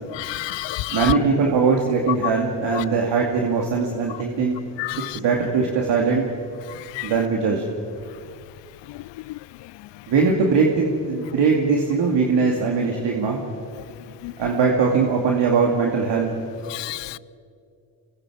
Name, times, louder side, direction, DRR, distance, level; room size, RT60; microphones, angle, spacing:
voice 1, 0.2-1.2 4.8-5.1 7.0-7.1 14.2-14.3 16.7-17.2, left 18 dB, 75° left, 0.6 m, -28 dB
voice 2, 0.9-4.6 5.1-6.2 7.0-7.6 10.1-13.4 14.4-16.3, right 5 dB, 70° right, 2.7 m, -21 dB
27.0 x 23.0 x 5.0 m
supercardioid pair, 60°, 44 cm